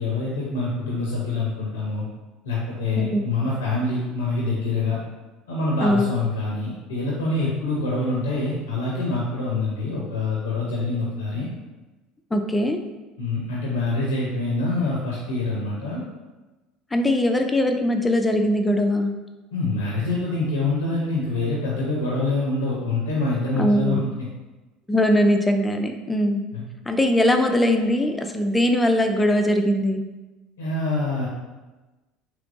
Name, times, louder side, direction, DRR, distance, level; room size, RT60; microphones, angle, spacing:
voice 1, 0.0-2.1 2.4-5.0 5.5-11.5 13.2-16.0 19.5-24.1 26.5-26.6 30.6-31.3, left 3 dB, 85° left, -5 dB, 0.6 m, -25 dB
voice 2, 3.0-3.3 5.8-6.1 12.3-12.8 16.9-19.1 23.6-24.0 24.9-26.4 26.9-30.0, left 1 dB, 15° left, 5 dB, 0.4 m, -21 dB
3.4 x 2.9 x 2.5 m, 1.2 s
hypercardioid pair, 75°, 0 cm